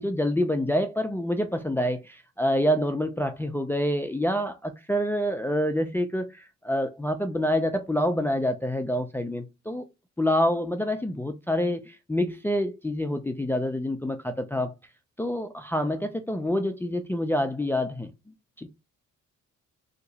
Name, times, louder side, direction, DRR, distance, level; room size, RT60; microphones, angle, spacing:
voice 1, 0.0-9.9 10.2-14.7 15.2-18.1 18.6-18.7, equal, 5° left, 0.4 m, -27 dB
2.8 x 2.2 x 3.9 m
cardioid pair, 90°, 30 cm